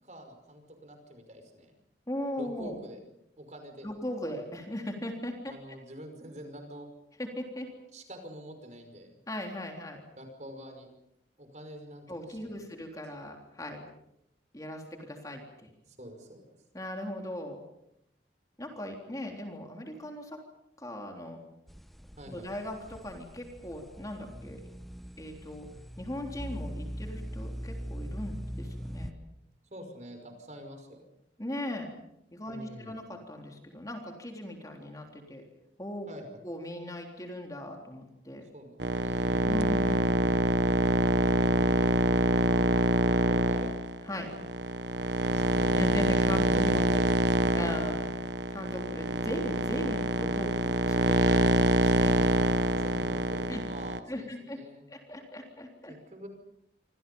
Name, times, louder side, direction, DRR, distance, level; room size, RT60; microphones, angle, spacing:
voice 1, 0.0-1.7 2.4-3.0 3.4-3.9 5.5-6.9 7.9-9.2 10.2-10.9 11.4-12.8 15.9-16.4 22.2-22.5 29.7-31.0 32.5-33.0 36.1-36.4 38.5-39.5 43.0-43.9 45.3-45.8 46.4-47.8 52.8-54.8 55.9-56.3, equal, 40° right, 5 dB, 5.5 m, -46 dB
voice 2, 2.1-2.8 3.8-5.5 7.2-7.7 9.3-10.0 12.1-13.8 14.5-15.7 16.7-17.6 18.6-20.4 20.8-21.4 22.3-24.6 25.2-25.7 26.0-29.1 31.4-31.9 32.3-35.5 35.8-36.1 36.4-38.5 39.4-40.4 42.5-42.7 44.0-44.3 45.8-46.8 47.5-52.2 53.5-53.6 54.1-54.6 54.9-55.9, left 1 dB, 20° left, 2 dB, 3.6 m, -38 dB
sound 1, 21.7-29.1, equal, ahead, 1.0 m, -41 dB
sound 2, 38.8-54.0, right 1 dB, 85° right, 1.3 m, -25 dB
28.5 x 26.0 x 5.5 m, 0.79 s
head